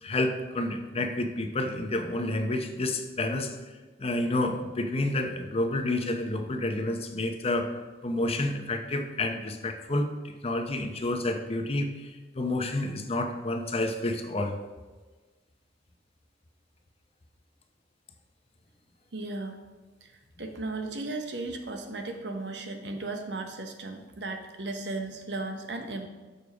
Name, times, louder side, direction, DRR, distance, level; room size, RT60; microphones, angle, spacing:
voice 1, 0.0-3.6 4.0-7.7 8.0-10.0 10.4-14.6, left 2 dB, 35° left, 5 dB, 0.7 m, -29 dB
voice 2, 19.1-19.6 20.0-20.1 20.4-26.1, right 2 dB, 70° right, 5 dB, 0.9 m, -35 dB
6.9 x 5.2 x 4.9 m, 1.3 s
head